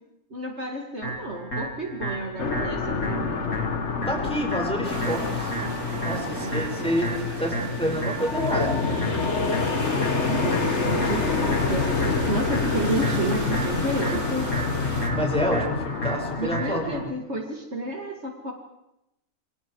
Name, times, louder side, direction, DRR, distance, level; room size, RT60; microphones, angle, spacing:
voice 1, 0.3-3.5 5.9-6.9 10.2-14.5 16.4-18.5, right 2 dB, 50° right, 2 dB, 2.6 m, -31 dB
sound 1, 1.0-17.0, left 1 dB, 75° left, 4.9 m, -33 dB
sound 2, 2.4-17.1, left 4 dB, 50° left, 1.7 m, -28 dB
voice 2, 4.1-5.5 6.0-7.1 7.4-9.0 15.1-17.0, equal, 5° left, 0 dB, 5.6 m, -28 dB
sound 3, 4.8-15.1, right 2 dB, 90° right, 3.5 m, -34 dB
29.0 x 24.5 x 4.7 m, 0.86 s
omnidirectional pair, 1.5 m